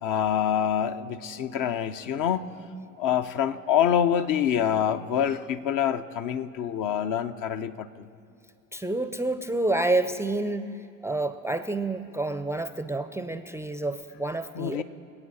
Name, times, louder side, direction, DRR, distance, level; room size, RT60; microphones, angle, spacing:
voice 1, 0.0-2.5 3.0-8.1 14.5-14.8, left 9 dB, 50° left, 9 dB, 0.7 m, -26 dB
voice 2, 8.7-10.7 11.0-14.8, right 2 dB, 5° right, 10 dB, 0.5 m, -28 dB
25.0 x 8.9 x 4.1 m, 2.4 s
hypercardioid pair, 60°, 40 cm